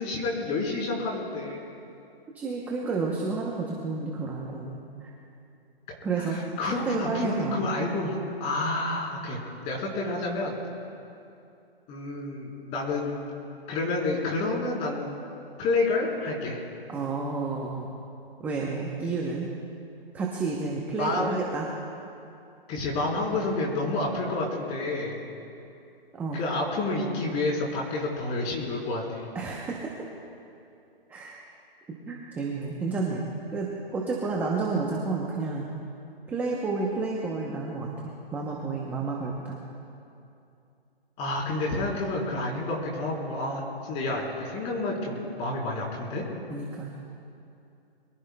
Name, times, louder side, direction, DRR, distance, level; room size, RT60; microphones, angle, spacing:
voice 1, 0.0-1.7 6.2-10.6 11.9-13.1 13.7-15.2 15.6-16.6 21.0-21.4 22.7-25.2 26.3-29.2 41.2-46.3, left 2 dB, 20° left, -2 dB, 3.8 m, -29 dB
voice 2, 2.3-5.1 6.0-6.4 6.6-7.6 16.9-17.9 18.4-19.5 20.1-21.7 26.1-26.4 29.3-29.9 31.1-31.4 32.1-35.7 36.3-37.9 38.3-39.6 46.5-46.9, right 4 dB, 5° right, -2 dB, 0.7 m, -30 dB
25.0 x 23.0 x 2.2 m, 2.6 s
hypercardioid pair, 150°, 30 cm